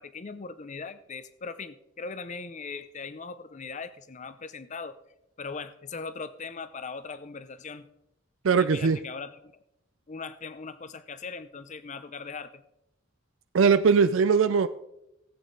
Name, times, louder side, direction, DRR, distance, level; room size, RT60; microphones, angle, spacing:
voice 1, 0.0-5.0 5.4-7.9 8.5-9.5 10.1-12.6, left 4 dB, 35° left, 13 dB, 0.6 m, -39 dB
voice 2, 8.4-9.0 13.5-14.7, right 5 dB, 70° right, 11 dB, 0.5 m, -20 dB
17.5 x 8.5 x 3.9 m, 0.85 s
head